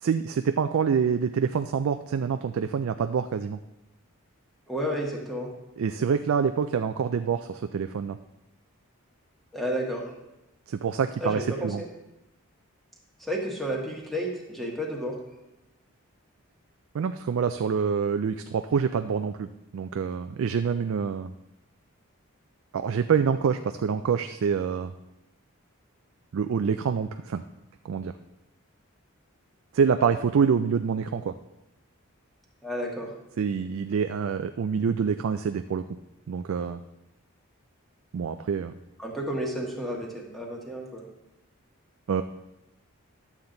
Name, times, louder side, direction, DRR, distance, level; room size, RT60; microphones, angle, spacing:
voice 1, 0.0-3.6 5.8-8.2 10.7-11.8 16.9-19.5 19.7-21.3 22.7-24.9 26.3-27.4 27.8-28.1 29.7-31.4 33.4-35.9 36.3-36.8 38.1-38.7 42.1-42.2, right 6 dB, 65° right, 9 dB, 0.3 m, -26 dB
voice 2, 4.7-5.5 9.5-10.1 11.2-11.9 13.2-15.2 32.6-33.1 39.0-41.0, equal, ahead, -1 dB, 1.4 m, -31 dB
11.5 x 7.2 x 3.9 m, 0.93 s
head